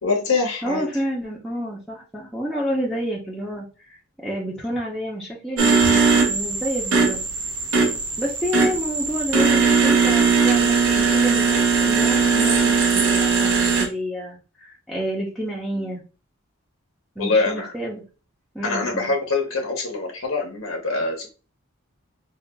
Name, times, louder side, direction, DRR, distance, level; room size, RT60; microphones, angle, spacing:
voice 1, 0.0-0.9 5.8-6.0 17.2-17.7 18.6-21.3, left 3 dB, 80° left, 2 dB, 0.8 m, -24 dB
voice 2, 0.6-7.2 8.2-16.0 17.2-18.0 18.5-19.1, equal, ahead, -5 dB, 0.6 m, -29 dB
sound 1, 5.6-13.9, right 5 dB, 75° right, 0.9 m, -19 dB
5.5 x 2.3 x 2.2 m, 0.33 s
head